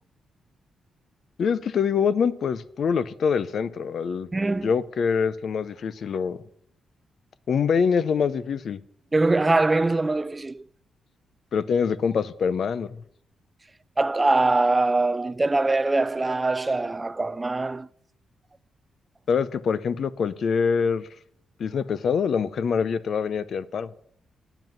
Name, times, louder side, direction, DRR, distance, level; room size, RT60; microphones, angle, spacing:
voice 1, 1.4-4.3 4.6-6.4 7.5-8.8 11.5-13.0 19.3-21.1 21.6-23.9, left 6 dB, 55° left, 0.6 m, -24 dB
voice 2, 4.3-4.7 9.1-10.6 14.0-17.9, right 2 dB, 15° right, 0.3 m, -23 dB
9.1 x 7.8 x 7.6 m
wide cardioid pair, 145°, 0 cm